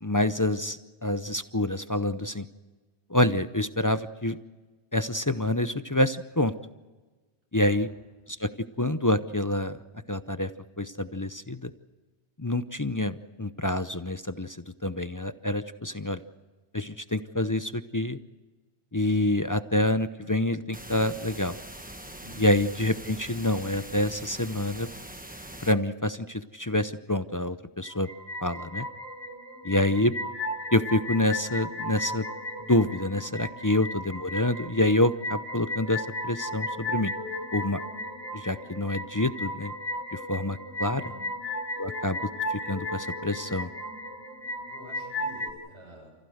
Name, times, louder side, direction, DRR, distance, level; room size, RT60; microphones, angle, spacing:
voice 1, 0.0-2.5 3.1-4.4 4.9-6.5 7.5-7.9 8.3-8.5 8.8-9.8 10.1-10.5 10.8-11.7 12.4-14.6 14.8-16.2 16.7-18.2 18.9-21.6 22.4-24.9 25.6-28.1 28.4-28.9 29.6-30.1 30.7-32.3 32.7-37.1 37.5-37.8 38.3-39.7 40.1-41.0 41.8-42.2 42.5-43.7, left 1 dB, 20° left, 11 dB, 0.6 m, -27 dB
sound 1, 20.7-25.7, right 1 dB, 10° right, 1.1 m, -43 dB
voice 2, 22.2-22.5 33.5-33.6 40.8-41.2 44.6-46.1, right 1 dB, 80° right, -2 dB, 7.7 m, -49 dB
sound 2, 27.8-45.5, left 1 dB, 65° left, 4.8 m, -35 dB
29.5 x 15.5 x 7.9 m, 1.3 s
omnidirectional pair, 1.1 m